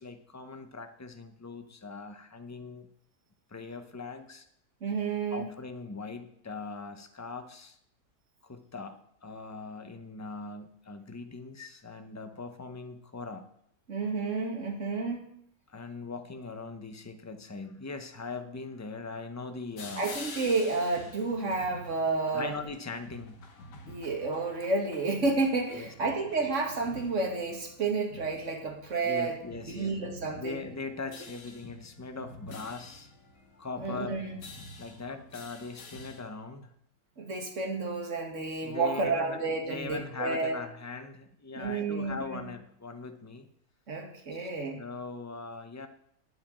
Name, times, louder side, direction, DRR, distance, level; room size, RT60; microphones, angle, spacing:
voice 1, 0.0-2.9 3.5-4.5 5.3-7.8 8.4-13.5 15.7-20.1 22.3-23.4 25.7-25.9 29.0-30.1 30.3-33.1 33.6-34.3 34.8-36.7 38.6-39.4 39.6-43.5 44.3-44.5 44.8-45.9, left 4 dB, 15° left, 8 dB, 0.6 m, -40 dB
voice 2, 4.8-5.5 13.9-15.3 20.0-22.5 23.9-29.4 29.7-30.6 33.8-34.4 37.2-40.6 41.5-42.5 43.9-44.8, right 3 dB, 45° right, 2 dB, 2.3 m, -30 dB
sound 1, 19.8-36.2, left 2 dB, 90° left, 2.2 m, -48 dB
8.7 x 8.5 x 8.9 m, 0.70 s
omnidirectional pair, 1.8 m